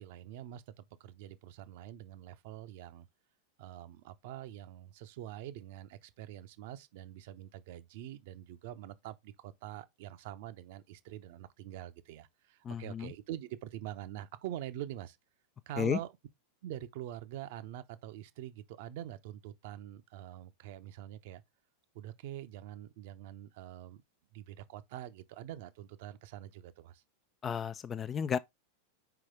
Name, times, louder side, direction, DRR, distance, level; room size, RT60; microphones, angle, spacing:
voice 1, 0.0-3.1 3.6-15.2 15.7-16.1 16.6-21.4 21.9-24.0 24.3-27.0, right 12 dB, 50° right, 0.7 m, -45 dB
voice 2, 12.6-13.1 15.8-16.0 27.4-28.4, left 7 dB, 25° left, 0.4 m, -33 dB
5.8 x 4.9 x 3.5 m
figure-of-eight pair, 90°, 0 cm